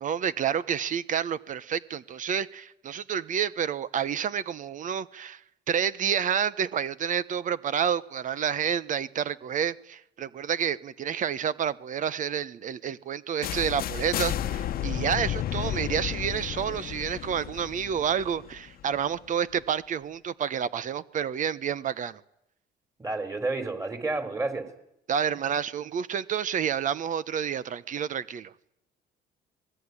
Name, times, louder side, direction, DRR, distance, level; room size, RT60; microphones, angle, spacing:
voice 1, 0.0-22.2 25.1-28.5, right 8 dB, 50° right, 17 dB, 1.0 m, -29 dB
sound 1, 13.4-19.3, left 11 dB, 60° left, 1.1 m, -32 dB
voice 2, 23.0-24.7, right 3 dB, 20° right, 10 dB, 4.6 m, -30 dB
24.5 x 20.5 x 9.9 m, 0.79 s
cardioid pair, 110°, 17 cm